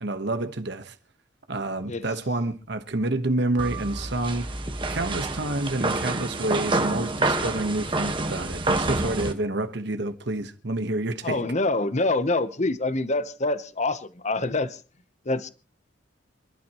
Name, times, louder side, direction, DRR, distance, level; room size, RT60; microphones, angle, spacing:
voice 1, 0.0-0.9 1.5-4.5 4.9-11.4, right 2 dB, 65° right, 1.3 m, -28 dB
sound 1, 3.6-9.3, right 2 dB, 25° right, 1.5 m, -28 dB
voice 2, 11.2-14.8 15.2-15.5, left 2 dB, 40° left, 0.9 m, -26 dB
28.0 x 12.0 x 3.1 m
head